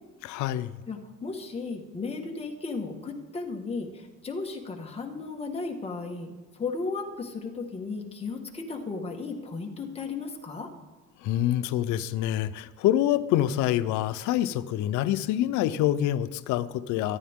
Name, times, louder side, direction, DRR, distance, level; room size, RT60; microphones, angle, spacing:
voice 1, 0.2-0.7 11.2-17.2, left 12 dB, 85° left, 14 dB, 0.7 m, -26 dB
voice 2, 0.9-10.7, left 4 dB, 20° left, 2 dB, 1.6 m, -35 dB
24.5 x 9.4 x 3.6 m, 1.3 s
cardioid pair, 155°, 29 cm